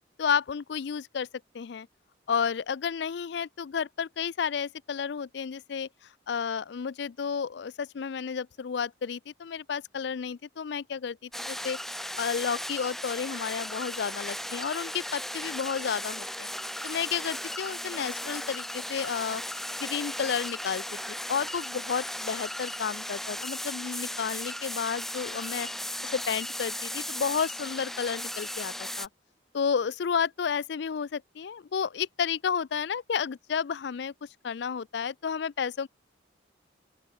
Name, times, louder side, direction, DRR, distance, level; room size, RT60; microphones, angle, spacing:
voice 1, 0.2-1.3 1.5-1.9 2.3-5.9 6.3-16.5 16.8-25.7 26.0-29.1 29.5-35.9, left 6 dB, 60° left, 0.4 m, -31 dB
sound 1, 11.3-29.1, left 1 dB, ahead, 0.6 m, -36 dB
open air
head